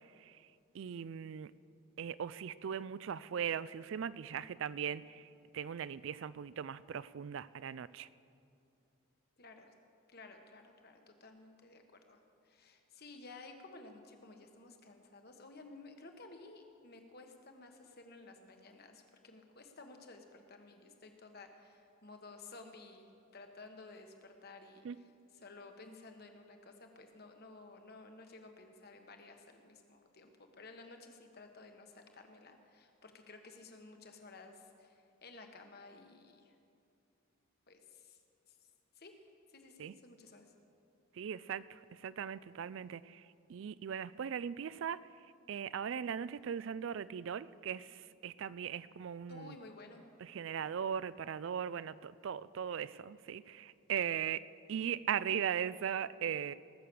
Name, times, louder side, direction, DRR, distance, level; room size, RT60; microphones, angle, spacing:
voice 1, 0.7-1.5 2.0-5.3 5.5-8.1 24.8-25.0 39.8-39.9 41.1-45.0 45.5-49.5 50.2-54.4 54.7-56.5, right 8 dB, 55° right, 18 dB, 0.3 m, -39 dB
voice 2, 9.4-9.7 10.1-25.1 25.3-36.6 37.7-38.2 38.5-38.6 38.9-39.2 39.5-40.5 49.3-50.0, left 3 dB, 45° left, 5 dB, 1.2 m, -54 dB
19.5 x 6.6 x 6.9 m, 2.6 s
head